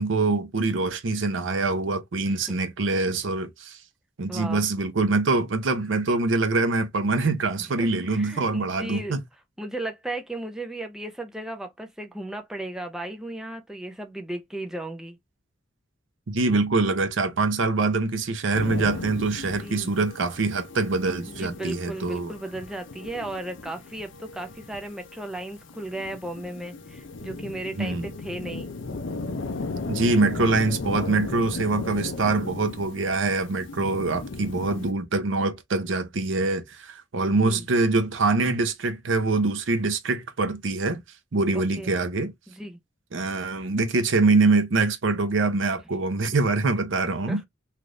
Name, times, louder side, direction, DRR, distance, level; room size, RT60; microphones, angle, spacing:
voice 1, 0.0-3.8 4.2-9.2 16.3-22.3 27.8-28.1 29.9-41.0 41.3-42.3 43.1-47.4, right 3 dB, 75° right, 0.6 m, -24 dB
voice 2, 2.3-2.6 4.3-4.7 7.8-9.2 9.6-15.2 19.6-19.9 21.3-28.7 37.4-37.6 41.5-41.9 42.5-42.8 47.3-47.4, right 1 dB, 5° right, 0.4 m, -35 dB
sound 1, 18.5-34.9, left 3 dB, 70° left, 0.5 m, -36 dB
3.2 x 2.5 x 2.5 m
head